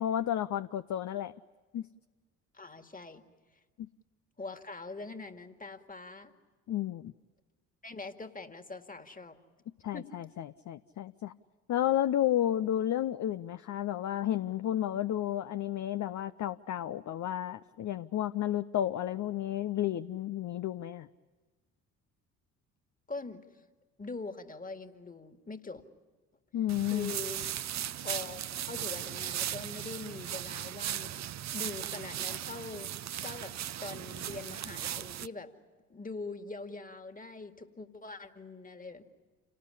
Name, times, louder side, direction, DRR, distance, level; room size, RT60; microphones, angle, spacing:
voice 1, 0.0-1.3 1.7-1.8 3.8-3.9 6.7-7.1 9.8-11.3 11.7-21.1 26.5-27.1, left 11 dB, 40° left, 12 dB, 0.7 m, -32 dB
voice 2, 2.5-3.2 4.4-6.3 7.8-9.4 9.9-10.1 23.1-23.4 24.0-25.8 26.9-27.4 28.0-31.2 31.5-32.9 33.2-33.5 33.8-35.5 35.9-39.0, left 3 dB, 20° left, 7 dB, 2.2 m, -43 dB
sound 1, 26.7-35.3, right 11 dB, 40° right, 0.7 m, -37 dB
28.5 x 19.0 x 9.9 m, 1.4 s
hypercardioid pair, 50°, 44 cm